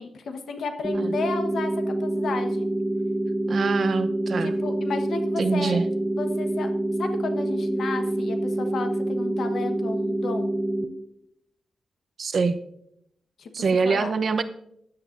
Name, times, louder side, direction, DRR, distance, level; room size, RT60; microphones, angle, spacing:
voice 1, 0.0-2.7 4.4-5.8 6.1-6.7 7.0-10.5 13.4-14.1, left 4 dB, 75° left, 6 dB, 1.2 m, -33 dB
sound 1, 0.8-10.8, right 1 dB, 20° right, 0.7 m, -26 dB
voice 2, 3.5-4.5 5.4-5.8 12.2-12.6 13.5-14.4, right 4 dB, 55° right, 9 dB, 0.8 m, -24 dB
15.5 x 10.5 x 2.6 m, 0.74 s
wide cardioid pair, 125°, 0 cm